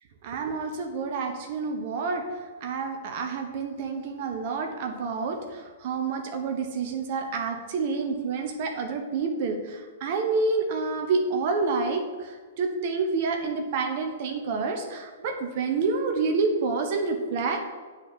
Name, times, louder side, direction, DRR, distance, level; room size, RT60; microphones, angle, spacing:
voice 1, 0.2-2.2 2.6-17.6, right 4 dB, 45° right, 4 dB, 1.1 m, -28 dB
8.8 x 4.3 x 7.2 m, 1.5 s
figure-of-eight pair, 110°, 0 cm